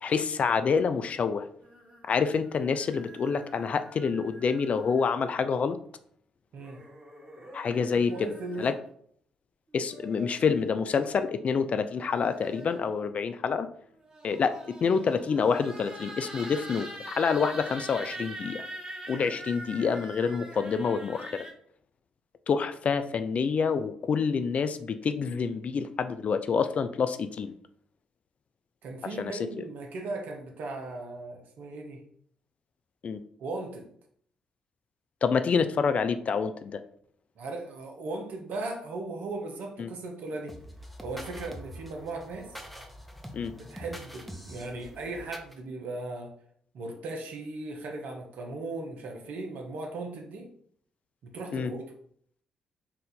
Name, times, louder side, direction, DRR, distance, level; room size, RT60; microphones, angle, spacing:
voice 1, 0.0-1.4 2.1-5.8 7.5-8.8 9.7-13.7 14.2-18.6 19.1-21.5 22.5-27.5 29.2-29.3 33.0-33.2 35.2-36.8 39.8-39.9 43.3-43.5 51.5-51.7, left 5 dB, 50° left, 10 dB, 0.4 m, -27 dB
sound 1, 1.6-5.3 6.5-8.9 9.7-10.7 11.8-12.9 13.9-21.5, right 1 dB, 30° right, 1.6 m, -45 dB
voice 2, 8.1-8.7 28.8-32.0 33.4-33.9 37.4-40.5 41.0-42.6 43.7-46.3 46.7-50.5 51.2-51.9, right 2 dB, 65° right, 3 dB, 0.9 m, -37 dB
sound 2, 40.5-45.6, equal, ahead, 0.7 m, -44 dB
4.2 x 2.5 x 4.1 m, 0.63 s
hypercardioid pair, 45°, 3 cm